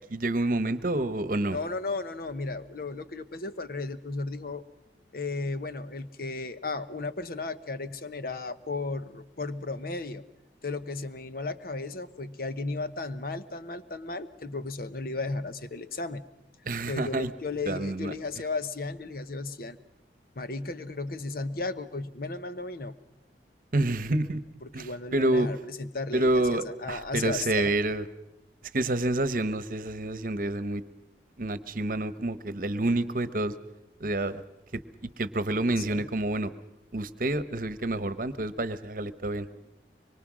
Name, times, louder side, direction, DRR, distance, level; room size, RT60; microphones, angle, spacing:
voice 1, 0.1-1.6 16.6-17.3 17.7-18.1 23.7-24.4 24.7-25.5 26.1-28.0 28.7-30.8 31.4-33.6 34.0-34.4 34.7-36.5 36.9-39.5, right 2 dB, 50° right, 13 dB, 1.1 m, -28 dB
voice 2, 1.5-4.7 5.1-10.2 10.6-16.2 16.9-19.8 20.3-23.0 24.6-27.7 35.8-36.1, left 3 dB, 55° left, 12 dB, 1.0 m, -35 dB
24.5 x 23.0 x 6.2 m, 0.94 s
head